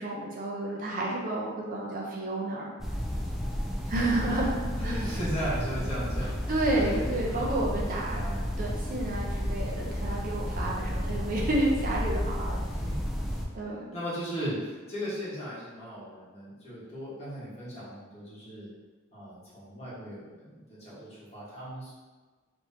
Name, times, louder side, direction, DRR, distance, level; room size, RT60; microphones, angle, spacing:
voice 1, 0.0-2.7 3.9-5.2 6.5-8.2 8.6-12.6 13.5-13.9, right 1 dB, 45° right, -3 dB, 0.6 m, -30 dB
sound 1, 2.8-13.4, equal, ahead, 0.3 m, -32 dB
voice 2, 4.7-6.3 6.7-7.0 7.3-7.6 7.9-8.5 12.6-12.9 13.6-18.7 19.1-21.9, equal, 35° left, -10 dB, 1.3 m, -37 dB
3.5 x 3.0 x 2.7 m, 1.3 s
head